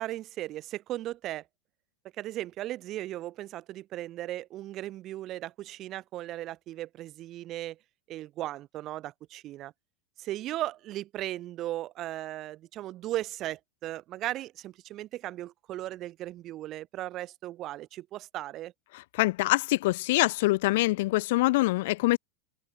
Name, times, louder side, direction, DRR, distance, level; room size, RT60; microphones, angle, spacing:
voice 1, 0.0-1.4 2.2-7.8 8.1-9.7 10.2-18.7, right 14 dB, 45° right, 2.4 m, -37 dB
voice 2, 19.1-22.2, left 20 dB, 65° left, 0.3 m, -24 dB
open air
hypercardioid pair, 95°, 0 cm